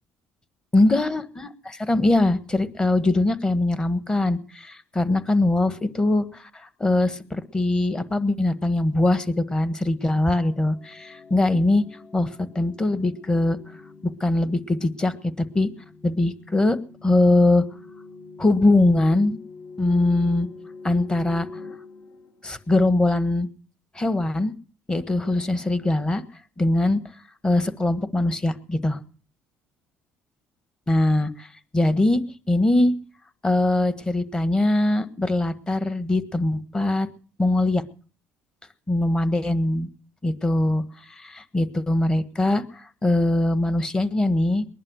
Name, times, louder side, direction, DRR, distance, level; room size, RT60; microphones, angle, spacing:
voice 1, 0.7-11.9 12.1-13.6 14.0-15.7 16.0-17.7 18.4-19.4 19.8-20.5 20.8-21.5 22.4-23.5 23.9-24.5 24.9-26.2 26.6-27.0 27.4-29.0 30.9-31.5 31.7-32.9 33.4-37.1 37.4-37.8 38.9-39.9 40.2-44.7, left 2 dB, 15° left, 13 dB, 1.4 m, -22 dB
sound 1, 10.3-23.0, left 4 dB, 50° left, 2.8 m, -45 dB
20.5 x 11.0 x 6.3 m, 0.42 s
cardioid pair, 120°, 5 cm